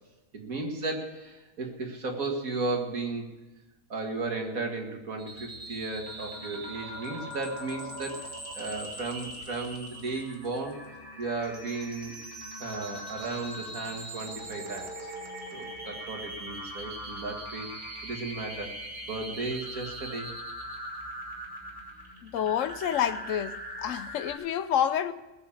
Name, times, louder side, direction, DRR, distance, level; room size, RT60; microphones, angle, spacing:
voice 1, 0.3-3.3 3.9-8.2 8.5-10.8 11.2-12.1 12.6-15.1 15.5-17.7 18.0-18.7 19.0-20.3, right 3 dB, 60° right, 2.4 m, -35 dB
sound 1, 5.2-24.3, right 1 dB, 30° right, 3.3 m, -41 dB
voice 2, 22.2-23.6 23.8-25.1, left 9 dB, 65° left, 0.9 m, -28 dB
19.5 x 7.2 x 7.2 m
omnidirectional pair, 1.7 m